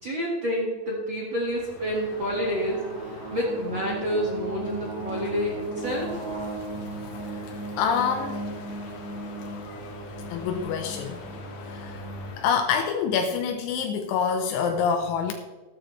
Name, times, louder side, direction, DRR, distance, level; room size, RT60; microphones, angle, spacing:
voice 1, 0.0-6.1, equal, 75° right, -4 dB, 1.1 m, -29 dB
Crow, 1.4-12.8, left 3 dB, 60° left, 2.5 m, -45 dB
sound 1, 2.1-12.3, right 2 dB, 55° right, 2.3 m, -37 dB
voice 2, 7.8-8.5 9.1-9.9 10.3-11.3 11.7-12.0 12.4-15.3, left 6 dB, 85° left, 4 dB, 3.1 m, -27 dB
14.0 x 13.0 x 3.2 m, 1.3 s
omnidirectional pair, 5.5 m